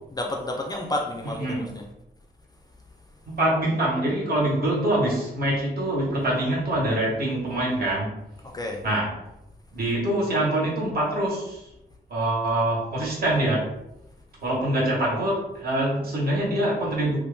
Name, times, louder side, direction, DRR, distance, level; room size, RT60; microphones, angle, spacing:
voice 1, 0.1-1.9 8.4-8.8, left 1 dB, 20° left, 1 dB, 0.3 m, -31 dB
voice 2, 3.3-8.1 8.8-9.1 9.7-11.7 12.1-13.7 14.4-17.2, right 1 dB, 60° right, -4 dB, 1.3 m, -24 dB
2.8 x 2.4 x 3.4 m, 0.86 s
wide cardioid pair, 145°, 18 cm